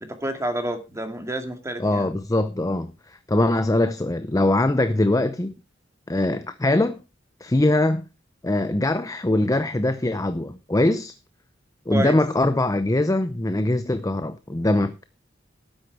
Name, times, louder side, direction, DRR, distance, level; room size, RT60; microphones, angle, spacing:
voice 1, 0.0-2.1 11.9-12.2, right 1 dB, 15° right, 2.2 m, -29 dB
voice 2, 1.8-5.5 6.1-7.0 7.4-8.0 8.4-11.1 11.9-15.0, left 1 dB, 20° left, 0.7 m, -22 dB
13.0 x 9.4 x 4.7 m
head